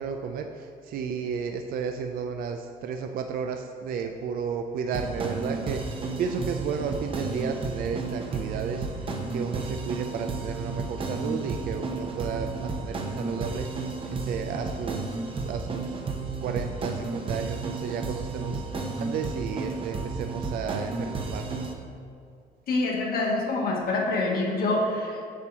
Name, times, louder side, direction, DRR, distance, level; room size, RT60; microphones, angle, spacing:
voice 1, 0.0-15.1 15.4-16.0 16.4-18.7 19.0-21.7, right 6 dB, 60° right, 5 dB, 0.4 m, -33 dB
sound 1, 4.9-21.7, right 3 dB, 30° right, 0.8 m, -32 dB
voice 2, 22.7-25.3, left 2 dB, 60° left, -2 dB, 1.4 m, -26 dB
8.4 x 2.8 x 6.1 m, 2.3 s
cardioid pair, 110°, 17 cm